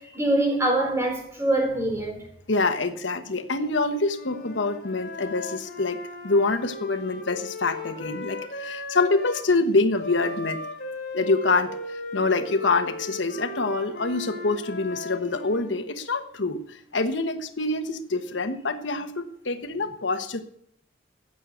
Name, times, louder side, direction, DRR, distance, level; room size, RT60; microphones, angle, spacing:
voice 1, 0.0-2.2, right 1 dB, 15° right, 4.2 m, -24 dB
voice 2, 2.5-10.6 11.1-20.4, left 3 dB, 85° left, 1.2 m, -26 dB
Wind instrument woodwind instrument, 4.0-9.5 10.0-15.8, left 2 dB, 60° left, 2.5 m, -37 dB
15.0 x 6.5 x 8.4 m
head